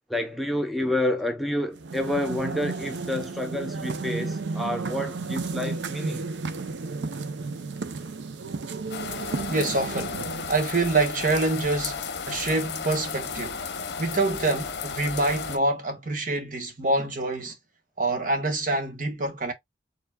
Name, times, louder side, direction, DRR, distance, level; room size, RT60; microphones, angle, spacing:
voice 1, 0.1-6.2, left 1 dB, ahead, 0.6 m, -29 dB
sound 1, 1.7-10.7, right 3 dB, 85° right, 0.6 m, -33 dB
sound 2, 8.9-15.6, left 5 dB, 65° left, 0.7 m, -34 dB
voice 2, 9.5-17.5 18.0-19.5, right 2 dB, 50° right, 1.2 m, -26 dB
4.5 x 3.7 x 2.2 m
head